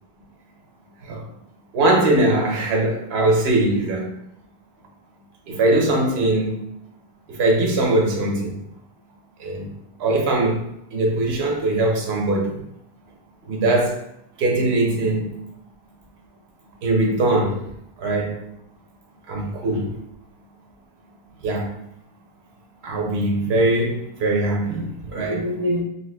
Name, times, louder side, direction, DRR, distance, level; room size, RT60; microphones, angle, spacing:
voice 1, 1.7-4.1 5.5-6.6 7.3-8.6 9.4-9.7 10.0-10.7 10.9-12.6 13.5-14.0 14.4-15.3 16.8-17.6 18.0-18.4 19.3-20.0 21.4-21.7 22.8-25.8, right 2 dB, 85° right, 1 dB, 0.9 m, -21 dB
3.8 x 2.3 x 2.2 m, 0.75 s
omnidirectional pair, 1.0 m